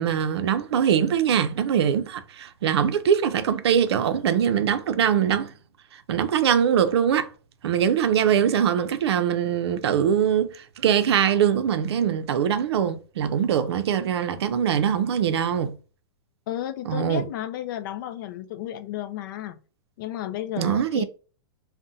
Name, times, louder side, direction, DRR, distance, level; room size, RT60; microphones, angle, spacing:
voice 1, 0.0-5.5 6.1-7.3 7.6-15.8 16.9-17.2 20.6-21.0, right 8 dB, 80° right, 0.5 m, -22 dB
voice 2, 16.5-19.6 20.0-21.0, left 12 dB, 55° left, 0.4 m, -33 dB
2.7 x 2.1 x 3.7 m
hypercardioid pair, 150°, 13 cm